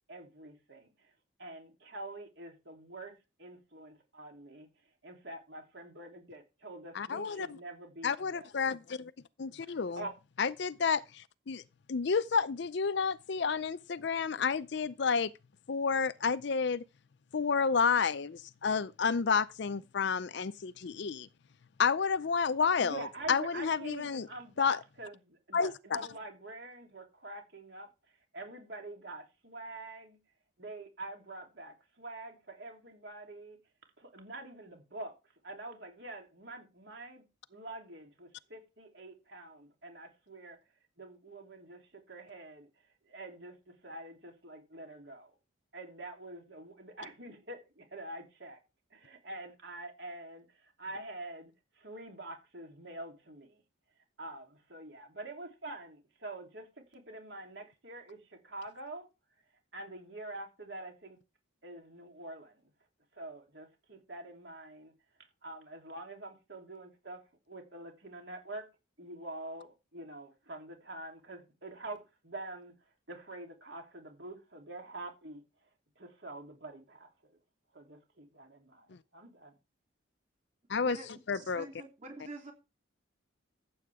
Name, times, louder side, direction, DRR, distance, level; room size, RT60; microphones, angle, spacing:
voice 1, 0.1-1.1 1.4-3.1 3.4-4.7 5.0-8.5 9.9-10.1 22.8-27.9 28.3-30.2 30.6-33.6 34.0-35.1 35.4-37.2 37.5-40.6 41.0-42.7 43.1-45.3 45.7-48.6 48.9-53.6 54.2-59.1 59.7-61.2 61.6-62.6 63.1-64.9 65.4-67.2 67.5-68.6 69.0-72.7 73.1-75.4 76.0-77.4 77.7-79.5, right 2 dB, 55° right, 3.2 m, -46 dB
voice 2, 6.9-7.6 8.0-9.1 9.4-10.0 10.4-11.6 11.9-15.3 15.7-16.8 17.3-21.3 21.8-24.3 24.6-24.8 25.5-26.0 80.7-81.0 81.3-81.7, left 5 dB, 55° left, 0.5 m, -30 dB
voice 3, 81.3-82.5, right 1 dB, 35° right, 3.3 m, -45 dB
14.5 x 7.8 x 3.5 m
head